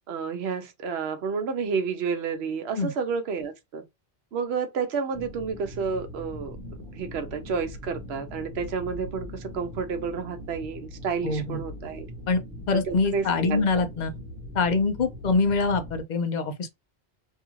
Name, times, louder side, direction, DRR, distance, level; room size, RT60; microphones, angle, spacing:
voice 1, 0.1-3.8 4.3-6.6 6.9-12.1 12.7-13.8, right 5 dB, 75° right, 0.9 m, -30 dB
sound 1, 5.1-16.0, left 1 dB, 55° right, 1.2 m, -41 dB
voice 2, 11.2-11.6 12.3-12.4 12.7-14.1 14.5-16.7, left 4 dB, 55° left, 0.6 m, -24 dB
2.7 x 2.4 x 3.0 m
omnidirectional pair, 1.1 m